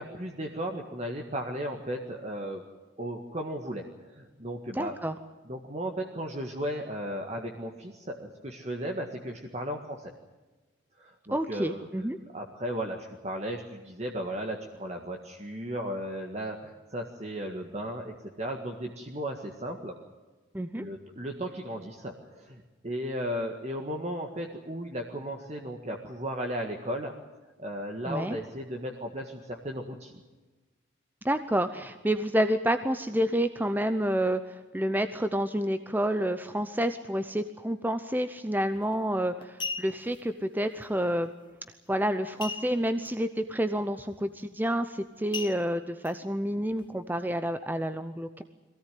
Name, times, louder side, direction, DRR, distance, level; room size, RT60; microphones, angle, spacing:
voice 1, 0.0-2.6 3.0-4.9 5.5-10.1 11.0-11.9 12.3-19.9 20.7-27.1 27.6-30.1, equal, 35° right, 2 dB, 1.7 m, -35 dB
voice 2, 4.7-5.1 11.3-12.2 20.5-20.9 28.1-28.4 31.2-41.3 41.9-48.4, equal, 10° right, 9 dB, 0.7 m, -29 dB
sound 1, 38.7-38.9 39.4-40.2 42.4-43.1 43.4-43.5 44.0-44.2 45.3-46.1 46.7-46.8, left 4 dB, 25° left, 1.4 m, -37 dB
22.5 x 17.0 x 9.3 m, 1.2 s
head